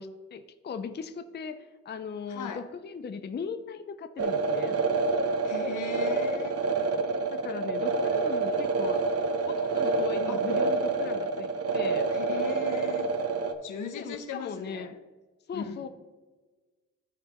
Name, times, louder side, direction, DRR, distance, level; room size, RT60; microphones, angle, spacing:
voice 1, 0.0-4.8 7.3-9.0 9.4-12.1 14.0-14.9 15.5-15.9, left 6 dB, 35° left, 10 dB, 0.5 m, -38 dB
voice 2, 2.3-2.6 5.4-6.6 10.3-10.4 12.1-13.1 13.6-14.9 15.5-15.8, left 6 dB, 75° left, 8 dB, 0.9 m, -38 dB
sound 1, 4.2-13.5, right 4 dB, 50° right, 0.9 m, -28 dB
14.0 x 5.4 x 3.0 m, 1.3 s
cardioid pair, 95°, 31 cm